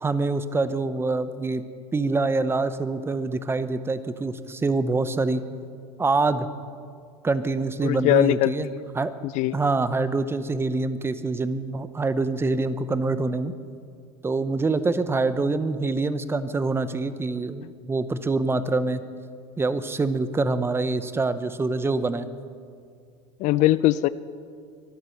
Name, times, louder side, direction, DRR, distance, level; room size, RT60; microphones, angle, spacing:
voice 1, 0.0-1.6 1.9-5.4 6.0-6.5 7.2-8.7 8.9-9.1 9.5-13.5 14.2-19.0 19.6-22.3, right 3 dB, 15° right, 13 dB, 0.8 m, -25 dB
voice 2, 7.8-8.8 9.3-9.5 23.4-24.1, left 15 dB, 50° left, 17 dB, 0.5 m, -21 dB
23.5 x 8.1 x 6.5 m, 2.2 s
supercardioid pair, 105°, 16 cm